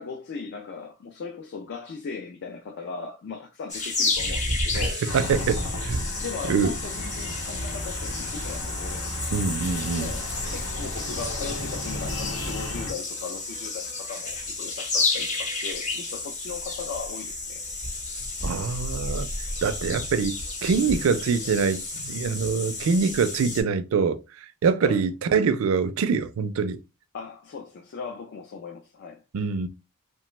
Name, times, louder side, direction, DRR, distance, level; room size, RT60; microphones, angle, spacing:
voice 1, 0.0-5.0 6.2-9.1 10.0-17.6 24.8-25.0 27.1-29.2, left 5 dB, 55° left, 0.3 m, -38 dB
sound 1, 3.7-23.6, left 2 dB, 35° left, 0.8 m, -31 dB
sound 2, 5.1-12.9, left 1 dB, 85° left, 1.0 m, -34 dB
voice 2, 5.1-6.0 6.5-6.7 9.3-10.1 18.4-19.3 19.6-24.2 24.6-26.8 29.3-29.7, right 5 dB, 65° right, 0.4 m, -24 dB
3.1 x 2.1 x 3.0 m
head